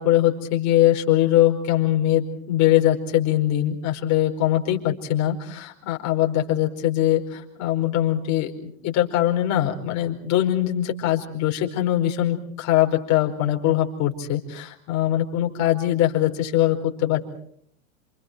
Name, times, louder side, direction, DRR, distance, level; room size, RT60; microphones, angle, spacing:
voice 1, 0.0-17.2, left 13 dB, 45° left, 2 dB, 5.0 m, -22 dB
29.0 x 27.5 x 4.6 m, 0.64 s
hypercardioid pair, 120°, 39 cm